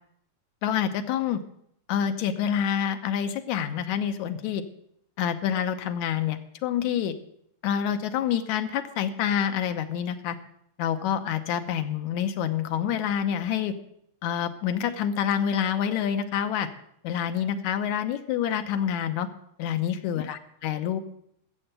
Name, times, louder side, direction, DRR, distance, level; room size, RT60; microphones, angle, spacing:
voice 1, 0.6-1.4 1.9-4.6 5.2-7.1 7.6-10.4 10.8-13.7 14.2-16.7 17.0-19.3 19.6-21.0, left 9 dB, 85° left, 8 dB, 2.3 m, -27 dB
13.5 x 7.8 x 7.9 m, 0.72 s
omnidirectional pair, 3.3 m